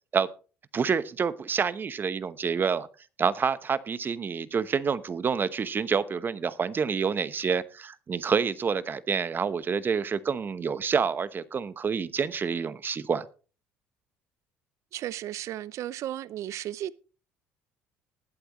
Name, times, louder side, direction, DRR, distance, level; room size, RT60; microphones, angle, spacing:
voice 1, 0.7-2.9 3.2-13.3, right 6 dB, 35° right, 0.9 m, -28 dB
voice 2, 14.9-16.9, right 12 dB, 60° right, 0.5 m, -34 dB
20.0 x 7.9 x 3.1 m
supercardioid pair, 75°, 6 cm